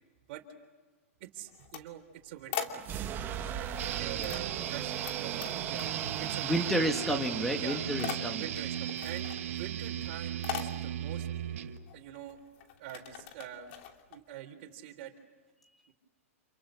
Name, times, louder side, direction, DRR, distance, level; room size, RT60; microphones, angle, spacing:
voice 1, 1.2-2.9 3.5-5.9 6.2-6.9 7.5-7.8 8.3-11.3 11.9-12.4 12.8-13.7 14.1-15.1 15.9-16.0, right 11 dB, 50° right, 7 dB, 3.6 m, -45 dB
sound 1, 1.4-3.3 3.7-5.1 5.4-6.2 6.5-7.2 7.4-14.2, left 10 dB, 50° left, 2.7 m, -42 dB
sound 2, 2.7-10.4, right 9 dB, 25° right, 1.7 m, -40 dB
sound 3, 3.8-11.8, right 11 dB, 65° right, 1.8 m, -36 dB
voice 2, 6.4-8.4, equal, 5° left, 3 dB, 2.0 m, -30 dB
29.5 x 28.0 x 6.4 m, 1.3 s
hypercardioid pair, 135°, 8 cm